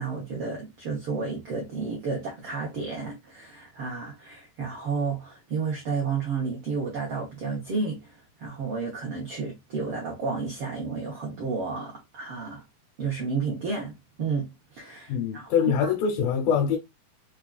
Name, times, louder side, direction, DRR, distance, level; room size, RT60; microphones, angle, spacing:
voice 1, 0.0-12.6 13.0-15.5 15.8-15.9, right 4 dB, 85° right, 1.2 m, -31 dB
voice 2, 15.1-16.8, left 7 dB, 90° left, 2.5 m, -24 dB
5.6 x 2.4 x 2.3 m
omnidirectional pair, 3.9 m